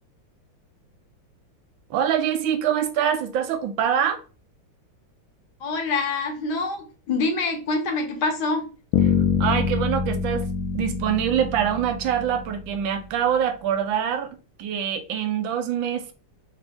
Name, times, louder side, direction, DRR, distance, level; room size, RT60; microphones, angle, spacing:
voice 1, 1.9-4.2 9.4-10.5 10.7-16.1, right 9 dB, 80° right, 1.4 m, -24 dB
voice 2, 5.6-8.7, left 3 dB, 65° left, 1.3 m, -26 dB
Bass guitar, 8.9-12.9, left 6 dB, 85° left, 1.4 m, -25 dB
4.1 x 2.5 x 3.4 m
omnidirectional pair, 2.1 m